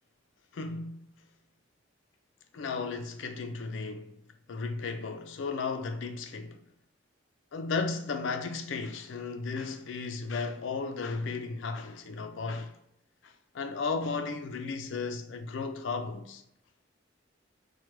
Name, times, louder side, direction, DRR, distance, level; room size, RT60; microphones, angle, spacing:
voice 1, 0.5-1.1 2.5-4.2 4.5-6.6 7.5-12.7 13.2-16.4, left 4 dB, 80° left, 0.4 m, -35 dB
4.6 x 2.1 x 3.0 m
head